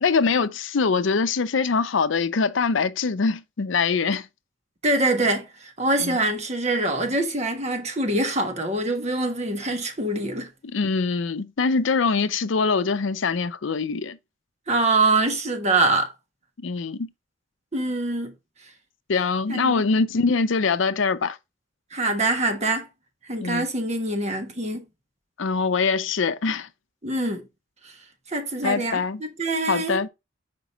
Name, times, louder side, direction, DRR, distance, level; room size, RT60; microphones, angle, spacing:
voice 1, 0.0-4.3 6.0-6.2 10.6-14.2 16.6-17.1 19.1-21.4 23.4-23.6 25.4-26.7 28.6-29.2 29.7-30.1, left 4 dB, 75° left, 0.5 m, -23 dB
voice 2, 4.8-10.5 14.7-16.1 17.7-18.3 19.5-19.7 21.9-22.9 23.3-24.8 27.0-27.5 27.8-27.9 28.3-30.0, right 2 dB, 35° right, 1.4 m, -24 dB
6.0 x 5.2 x 3.8 m
head